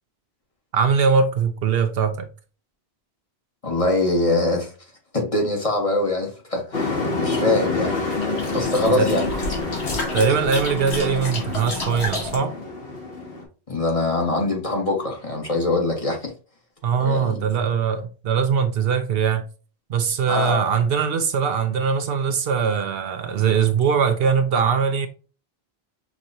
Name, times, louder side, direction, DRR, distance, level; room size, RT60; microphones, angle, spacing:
voice 1, 0.7-2.3 9.0-9.1 10.1-12.5 16.8-19.5 19.9-25.1, right 6 dB, 70° right, 0.8 m, -21 dB
voice 2, 3.6-4.7 5.1-7.9 8.5-9.2 13.7-16.3 17.0-17.4 20.3-20.7, left 2 dB, 35° left, 1.2 m, -23 dB
Truck, 6.7-13.4, left 3 dB, 65° left, 1.4 m, -27 dB
sound 1, 8.0-12.4, left 2 dB, 90° left, 1.5 m, -32 dB
6.0 x 2.9 x 2.6 m
omnidirectional pair, 1.1 m